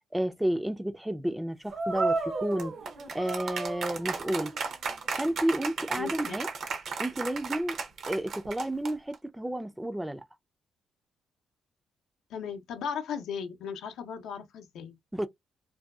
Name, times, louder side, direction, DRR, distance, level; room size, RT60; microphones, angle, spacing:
voice 1, 0.1-2.8 3.1-4.5 5.2-6.5 7.0-7.8 8.1-10.2 15.1-15.3, right 1 dB, 5° right, 0.3 m, -31 dB
sound 1, 1.7-9.1, right 4 dB, 65° right, 0.6 m, -33 dB
voice 2, 6.0-6.4 12.3-15.0, left 7 dB, 80° left, 0.5 m, -36 dB
2.6 x 2.2 x 2.2 m
cardioid pair, 90°, 0 cm